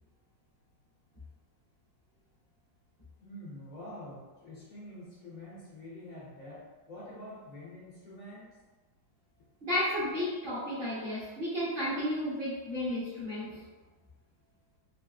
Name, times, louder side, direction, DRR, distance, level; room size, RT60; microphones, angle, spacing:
voice 1, 3.2-8.6, left 1 dB, 60° left, -7 dB, 0.9 m, -46 dB
voice 2, 9.6-13.6, left 1 dB, 35° right, -11 dB, 1.1 m, -32 dB
3.9 x 2.6 x 2.3 m, 1.2 s
omnidirectional pair, 2.1 m